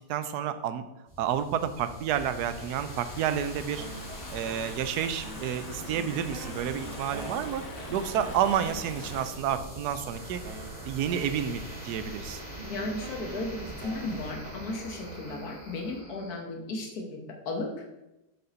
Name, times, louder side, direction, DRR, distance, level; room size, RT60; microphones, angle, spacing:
voice 1, 0.1-0.9 1.2-3.9 4.3-7.6 7.9-10.4 10.8-12.4, right 9 dB, 75° right, 11 dB, 1.1 m, -30 dB
sound 1, 1.1-16.4, right 1 dB, 25° right, 2.0 m, -43 dB
Stream / Ocean, 2.1-9.4, left 3 dB, 90° left, 1.8 m, -44 dB
sound 2, 3.8-5.6 5.9-9.1 9.9-10.0 10.4-15.8, right 3 dB, 45° right, 0.9 m, -47 dB
voice 2, 7.9-8.3 12.6-17.8, left 2 dB, 70° left, 2 dB, 1.6 m, -35 dB
6.8 x 5.1 x 4.0 m, 0.96 s
omnidirectional pair, 1.7 m